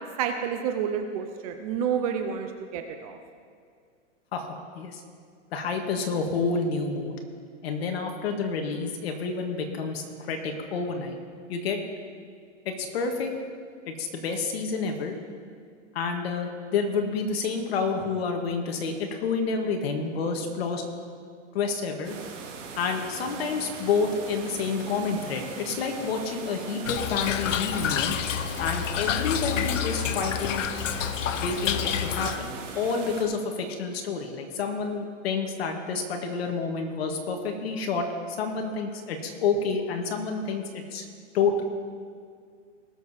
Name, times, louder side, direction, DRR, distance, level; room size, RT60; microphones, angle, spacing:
voice 1, 0.2-3.2, right 7 dB, 30° right, 6 dB, 0.7 m, -29 dB
voice 2, 4.3-5.0 5.5-7.2 7.6-11.2 11.5-11.8 12.7-13.3 13.9-15.2 15.9-20.8 21.5-22.2 22.8-28.2 28.6-30.6 31.3-41.1 41.3-41.6, left 4 dB, 55° left, 3 dB, 1.9 m, -29 dB
sound 1, 22.0-33.2, right 5 dB, 85° right, 2.6 m, -40 dB
Toilet flush / Trickle dribble, 26.9-32.4, left 9 dB, 80° left, 0.8 m, -28 dB
19.5 x 7.0 x 4.3 m, 2.1 s
hypercardioid pair, 155°, 37 cm